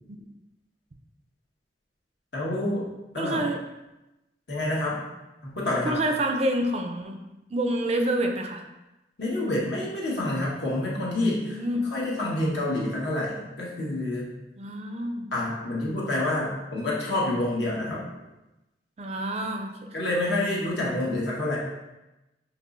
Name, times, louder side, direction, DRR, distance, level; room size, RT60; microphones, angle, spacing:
voice 1, 2.3-2.8 3.1-3.4 4.5-5.0 5.4-6.0 9.2-11.6 11.9-14.3 15.3-18.0 19.9-21.6, left 1 dB, 75° left, -5 dB, 1.3 m, -28 dB
voice 2, 3.2-3.6 5.8-7.2 7.5-8.6 11.5-11.9 14.6-15.3 19.0-19.9, right 1 dB, 35° right, 4 dB, 0.4 m, -27 dB
5.4 x 3.0 x 2.5 m, 0.99 s
head